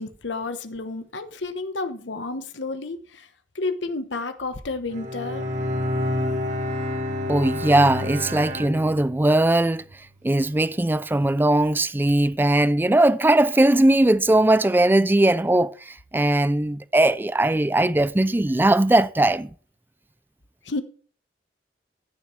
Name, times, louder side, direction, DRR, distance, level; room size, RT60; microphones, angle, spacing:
voice 1, 0.0-3.3 3.5-5.5 20.6-20.8, left 3 dB, 75° left, 1.1 m, -31 dB
Bowed string instrument, 4.9-9.3, left 2 dB, 40° right, 1.8 m, -29 dB
Bowed string instrument 2, 4.9-10.1, right 2 dB, 65° right, 1.0 m, -35 dB
voice 2, 7.3-9.8 10.2-19.5, right 1 dB, 10° right, 0.4 m, -19 dB
15.0 x 7.2 x 3.3 m
head